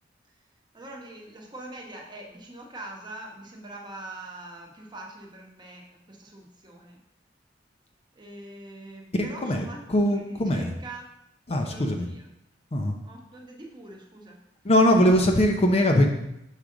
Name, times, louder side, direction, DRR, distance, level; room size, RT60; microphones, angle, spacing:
voice 1, 0.7-7.0 8.1-9.8 10.1-11.1 11.5-12.3 13.0-14.4, right 2 dB, 25° right, 0 dB, 1.0 m, -43 dB
voice 2, 9.1-10.7 11.5-12.1 12.7-13.0 14.6-16.1, equal, 35° left, 3 dB, 0.5 m, -21 dB
6.4 x 4.8 x 3.8 m, 0.82 s
head